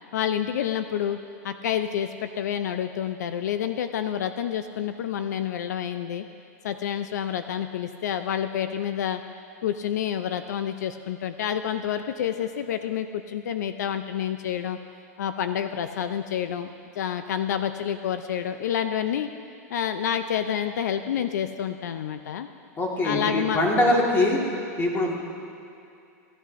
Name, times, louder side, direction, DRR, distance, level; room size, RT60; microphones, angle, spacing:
voice 1, 0.1-1.2 1.4-6.2 6.6-9.2 9.6-14.8 15.2-16.7 17.0-19.3 19.7-22.5 23.0-23.6, left 9 dB, 85° left, 10 dB, 0.4 m, -28 dB
voice 2, 22.8-24.4 24.8-25.1, left 1 dB, 25° left, -1 dB, 1.6 m, -22 dB
15.0 x 8.1 x 2.5 m, 2.6 s
hypercardioid pair, 125°, 9 cm